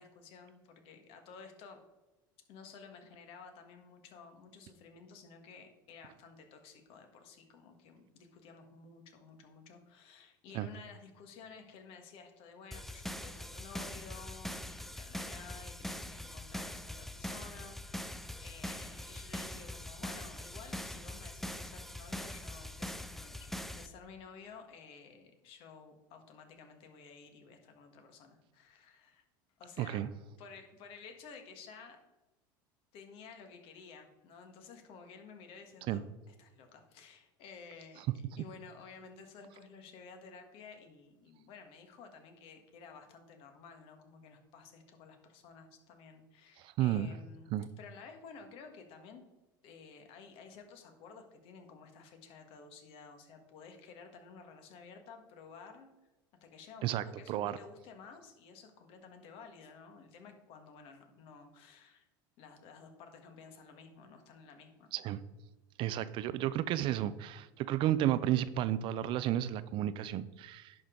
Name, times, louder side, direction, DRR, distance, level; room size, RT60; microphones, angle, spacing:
voice 1, 0.0-1.8 2.5-29.2 29.6-30.1 30.4-32.0 32.9-49.3 49.6-55.9 56.4-62.0 62.4-64.9, left 5 dB, 60° left, 5 dB, 1.5 m, -53 dB
sound 1, 12.7-23.9, left 1 dB, ahead, 0.5 m, -43 dB
voice 2, 29.8-30.1 35.9-36.0 46.8-47.1 47.5-47.7 56.8-57.6 64.9-65.2 65.8-70.7, right 12 dB, 50° right, 15 dB, 0.5 m, -32 dB
10.5 x 5.1 x 3.8 m, 1.0 s
hypercardioid pair, 90°, 11 cm